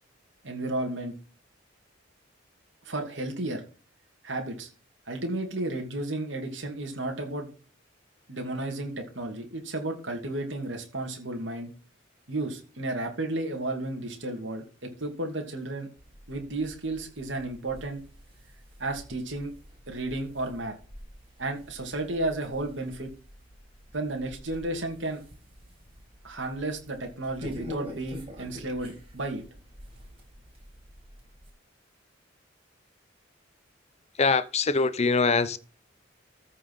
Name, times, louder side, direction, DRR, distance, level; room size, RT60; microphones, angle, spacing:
voice 1, 0.4-1.1 2.8-3.6 4.2-4.7 5.1-7.5 8.3-11.7 12.3-15.9 16.3-18.0 18.8-19.5 19.9-20.7 21.4-23.1 23.9-25.2 26.2-29.4, right 2 dB, 70° right, 2.6 m, -33 dB
sound 1, 16.0-31.5, equal, 30° right, 5.4 m, -47 dB
voice 2, 34.2-35.6, left 4 dB, 35° left, 0.8 m, -23 dB
14.0 x 5.6 x 5.6 m
head